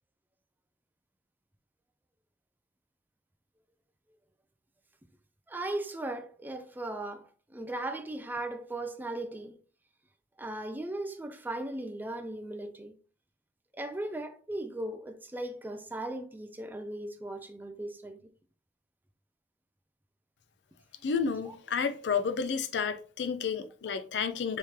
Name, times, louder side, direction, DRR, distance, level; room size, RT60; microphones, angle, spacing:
voice 1, 5.5-9.6 10.4-13.0 13.8-18.2 21.5-21.6, right 1 dB, 10° right, 0.4 m, -37 dB
voice 2, 21.0-24.6, left 6 dB, 75° left, 0.5 m, -31 dB
3.5 x 3.1 x 2.9 m
head